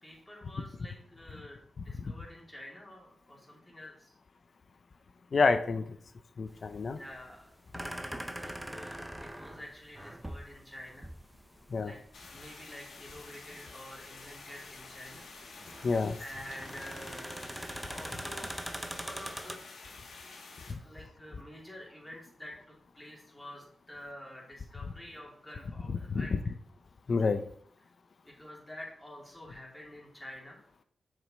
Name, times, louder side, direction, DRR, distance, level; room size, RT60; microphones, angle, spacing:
voice 1, 0.0-4.1 6.9-7.5 8.3-11.1 11.8-12.0 12.3-15.3 16.2-17.4 17.9-19.6 20.7-26.3 28.2-30.6, left 1 dB, 15° left, -3 dB, 2.7 m, -48 dB
voice 2, 5.3-5.8 6.4-7.0 11.7-11.9 15.8-16.2 20.7-20.8 26.1-26.3 27.1-27.4, left 4 dB, 60° left, 10 dB, 0.5 m, -28 dB
sound 1, 6.5-19.6, right 1 dB, 10° right, 0.7 m, -43 dB
sound 2, 12.1-20.7, left 3 dB, 85° left, 1.4 m, -50 dB
6.5 x 5.0 x 4.2 m, 0.63 s
cardioid pair, 60°, 0 cm